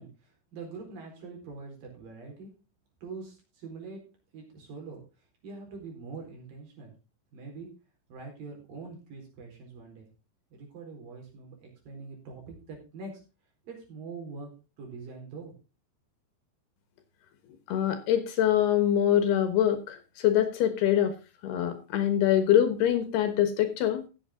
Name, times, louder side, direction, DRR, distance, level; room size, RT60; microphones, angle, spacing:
voice 1, 0.0-2.5 3.0-4.0 4.3-5.0 5.4-6.9 7.3-7.7 8.1-10.1 10.5-13.2 13.6-14.5 14.8-15.5, right 4 dB, 55° right, 1 dB, 5.7 m, -43 dB
voice 2, 17.7-21.2 21.4-24.1, left 10 dB, 70° left, 9 dB, 3.2 m, -24 dB
15.0 x 8.6 x 3.8 m, 0.31 s
omnidirectional pair, 5.1 m